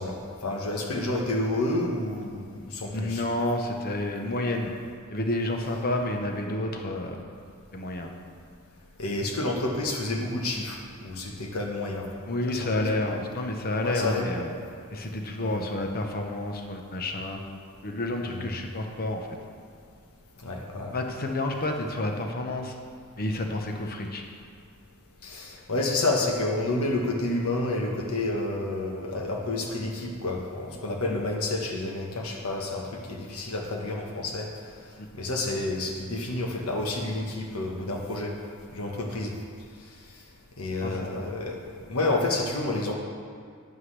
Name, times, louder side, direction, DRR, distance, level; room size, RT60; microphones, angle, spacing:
voice 1, 0.0-3.2 9.0-12.1 12.5-12.8 13.8-14.3 15.4-15.6 18.3-18.5 20.4-21.0 25.2-34.5 35.2-38.4 38.7-39.4 40.6-42.9, left 2 dB, 90° left, 0 dB, 1.2 m, -29 dB
voice 2, 2.9-4.7 5.1-7.2 7.7-8.1 12.3-14.5 14.9-17.4 17.8-19.4 20.9-22.7 23.2-24.2 35.0-35.1 40.8-41.3, left 1 dB, 45° left, 3 dB, 0.9 m, -30 dB
11.0 x 9.6 x 3.3 m, 2.1 s
head